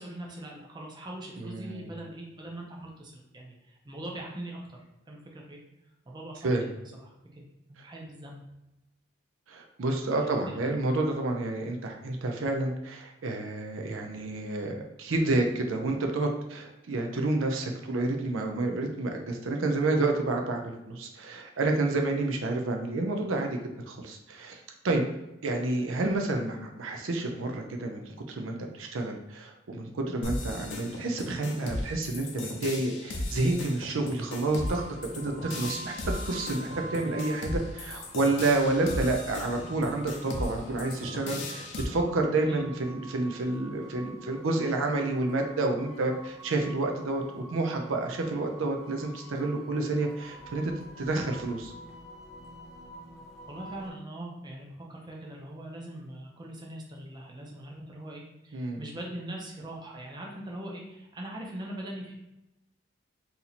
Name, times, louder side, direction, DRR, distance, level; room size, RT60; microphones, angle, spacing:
voice 1, 0.0-4.8 5.1-5.6 6.1-6.5 6.9-7.4 7.7-8.4 10.1-10.7 42.5-42.7 53.5-62.2, right 1 dB, 20° right, -1 dB, 0.6 m, -41 dB
voice 2, 1.4-1.9 6.4-6.7 9.5-23.6 23.9-24.6 24.8-25.0 25.4-34.8 35.1-51.7 58.5-58.8, right 2 dB, 75° right, 3 dB, 0.5 m, -29 dB
sound 1, 30.2-41.8, left 2 dB, 60° left, 0.7 m, -36 dB
sound 2, 34.4-53.9, right 1 dB, ahead, 0.9 m, -47 dB
2.8 x 2.7 x 4.1 m, 0.94 s
head